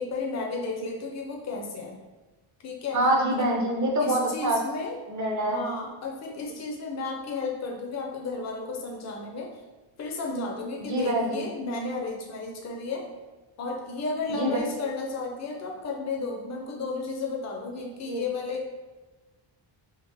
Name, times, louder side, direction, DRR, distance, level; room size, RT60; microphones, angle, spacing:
voice 1, 0.0-2.0 2.6-3.0 3.4-3.5 4.0-5.0 5.5-9.5 10.0-13.1 13.6-18.7, left 3 dB, 35° left, 1 dB, 0.5 m, -33 dB
voice 2, 2.9-4.6 5.1-5.6 10.9-11.5 14.3-14.6 18.1-18.2, right 1 dB, 40° right, 0 dB, 0.7 m, -25 dB
3.6 x 2.8 x 3.3 m, 1.2 s
wide cardioid pair, 175°, 48 cm